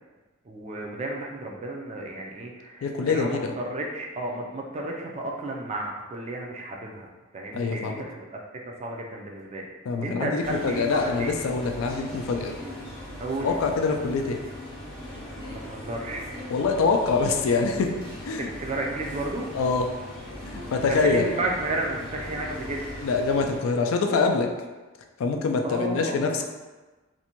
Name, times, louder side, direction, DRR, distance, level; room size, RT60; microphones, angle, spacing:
voice 1, 0.5-7.1 7.3-9.7 10.0-11.3 13.2-13.5 15.5-16.3 18.4-19.4 20.8-22.8 25.6-26.2, right 2 dB, 30° right, 0 dB, 0.3 m, -32 dB
voice 2, 2.8-3.5 7.5-8.0 9.9-12.5 13.4-14.4 16.5-17.9 18.2-18.5 19.5-19.9 20.4-21.2 23.0-24.5 25.2-26.4, left 4 dB, 80° left, 4 dB, 0.3 m, -25 dB
sound 1, 10.4-23.6, equal, 25° left, 0.6 m, -39 dB
2.6 x 2.1 x 2.8 m, 1.2 s
head